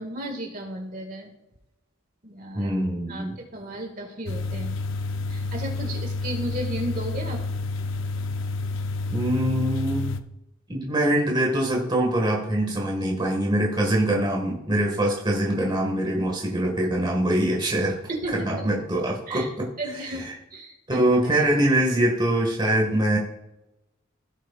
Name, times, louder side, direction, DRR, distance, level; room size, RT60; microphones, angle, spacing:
voice 1, 0.0-1.3 2.2-2.7 3.1-3.2 3.5-4.7 5.3-7.4 18.1-18.7 19.3-19.5 19.8-21.0 21.3-21.4, right 1 dB, 45° right, 1 dB, 1.8 m, -34 dB
voice 2, 2.5-3.4 9.1-10.1 10.7-18.0 18.3-19.7 20.1-20.3 20.9-23.2, right 1 dB, 25° right, -1 dB, 1.6 m, -23 dB
sound 1, 4.3-10.2, left 3 dB, 70° left, 0.6 m, -29 dB
16.5 x 6.4 x 2.4 m, 0.91 s
head